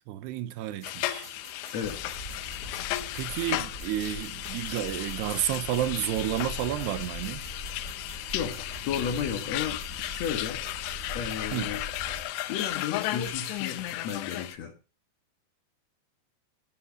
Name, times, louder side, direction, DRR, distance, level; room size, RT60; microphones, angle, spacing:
voice 1, 0.1-1.3 3.1-7.5 11.5-11.7, right 12 dB, 80° right, 2.9 m, -31 dB
sound 1, 0.8-14.6, left 15 dB, 90° left, 3.0 m, -35 dB
sound 2, 0.8-14.5, right 5 dB, 40° right, 2.1 m, -52 dB
voice 2, 1.7-2.2 8.3-10.6 11.1-11.8 12.5-14.8, left 7 dB, 60° left, 1.9 m, -33 dB
sound 3, 1.8-12.2, left 1 dB, 25° left, 4.5 m, -42 dB
15.0 x 12.5 x 2.8 m
omnidirectional pair, 4.9 m